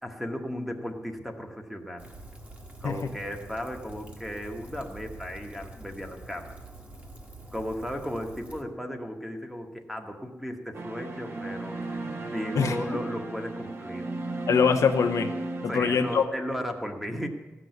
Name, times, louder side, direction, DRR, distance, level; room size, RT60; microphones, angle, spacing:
voice 1, 0.0-2.1 2.8-6.5 7.5-14.1 15.7-17.3, equal, ahead, 4 dB, 1.2 m, -35 dB
Rain, 2.0-8.6, right 1 dB, 25° right, 1.6 m, -45 dB
sound 1, 10.7-16.3, right 2 dB, 50° right, 1.2 m, -35 dB
voice 2, 14.5-16.3, left 6 dB, 85° left, 5 dB, 1.0 m, -23 dB
15.0 x 6.2 x 9.4 m, 1.2 s
wide cardioid pair, 140°, 5 cm